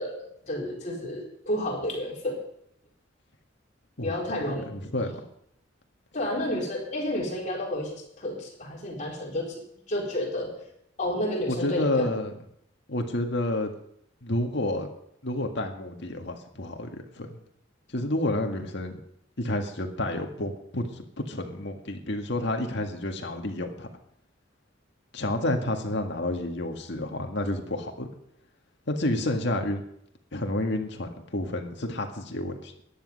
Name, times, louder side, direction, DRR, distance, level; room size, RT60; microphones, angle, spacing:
voice 1, 0.0-2.4 4.0-4.6 6.1-9.6 9.9-10.5 11.0-12.1, left 1 dB, 40° left, -2 dB, 4.4 m, -31 dB
voice 2, 4.4-5.1 11.5-12.3 12.9-13.7 14.2-14.9 15.2-17.4 17.9-19.0 19.4-23.9 25.1-28.1 28.9-29.8 30.3-32.8, left 1 dB, 65° left, 4 dB, 1.9 m, -30 dB
14.0 x 10.5 x 5.5 m, 0.73 s
head